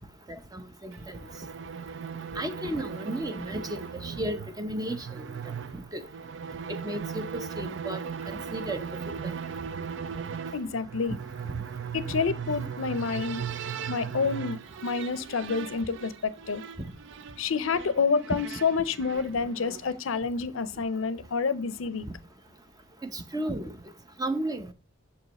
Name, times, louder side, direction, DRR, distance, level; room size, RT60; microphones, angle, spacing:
voice 1, 0.5-1.2 2.3-5.1 5.9-6.0 6.7-8.8 9.2-9.3 23.1-23.7 24.2-24.7, right 1 dB, 20° right, 0.6 m, -33 dB
sound 1, 0.9-20.0, right 7 dB, 65° right, 0.4 m, -38 dB
voice 2, 10.5-11.2 11.9-13.5 13.9-16.6 17.4-22.1, left 5 dB, 85° left, 0.6 m, -28 dB
6.9 x 4.8 x 4.0 m
head